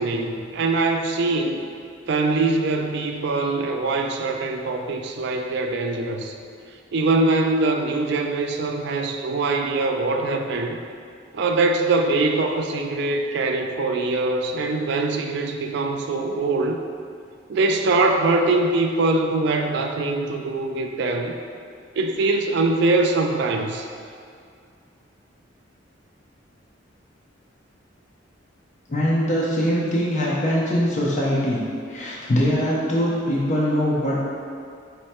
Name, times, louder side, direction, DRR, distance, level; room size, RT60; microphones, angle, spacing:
voice 1, 0.0-1.7 2.1-6.3 6.9-10.8 11.3-16.8 17.5-21.3 22.0-23.9, right 3 dB, 65° right, 4 dB, 0.4 m, -23 dB
voice 2, 28.9-34.2, equal, 40° left, -6 dB, 0.6 m, -22 dB
5.3 x 2.2 x 4.2 m, 2.3 s
head